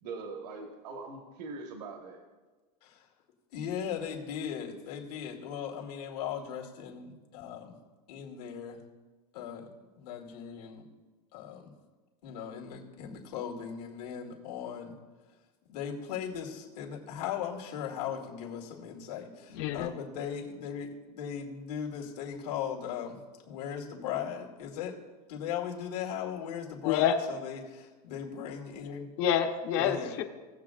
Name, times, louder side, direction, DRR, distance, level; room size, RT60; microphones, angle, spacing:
voice 1, 0.0-2.2, right 4 dB, 80° right, 3 dB, 1.4 m, -42 dB
voice 2, 3.5-7.8 8.1-8.8 9.3-9.7 10.0-10.9 11.3-11.8 12.2-14.9 15.7-20.9 21.2-23.2 23.5-25.0 25.3-29.1 29.8-30.1, left 8 dB, 75° left, 0 dB, 2.3 m, -38 dB
voice 3, 19.5-19.9 26.8-27.2 29.2-30.2, left 9 dB, 40° left, 5 dB, 0.9 m, -27 dB
18.5 x 7.6 x 2.4 m, 1.3 s
supercardioid pair, 180°, 21 cm